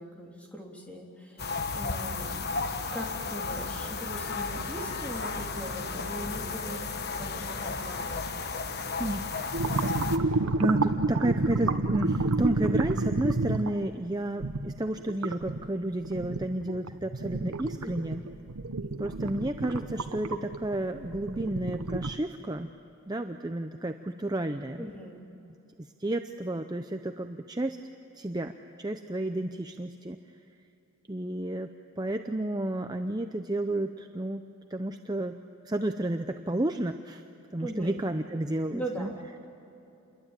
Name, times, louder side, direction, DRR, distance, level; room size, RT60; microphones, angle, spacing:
voice 1, 0.0-1.5 1.7-2.5 2.9-6.8 7.2-8.3 17.8-18.1 24.8-25.2 37.6-38.0 38.7-39.2, right 1 dB, 5° left, -1 dB, 3.2 m, -40 dB
sound 1, 1.4-10.2, left 4 dB, 45° left, 1.2 m, -34 dB
voice 2, 9.0-9.3 9.6-18.2 19.0-22.7 23.1-24.9 25.8-27.8 28.1-30.2 31.1-31.7 32.0-37.2 37.5-39.1, right 1 dB, 20° right, 7 dB, 0.6 m, -32 dB
sound 2, 9.5-13.8 14.4-15.7 16.0-22.1, right 2 dB, 90° right, 1.0 m, -29 dB
28.5 x 22.5 x 8.9 m, 2.9 s
head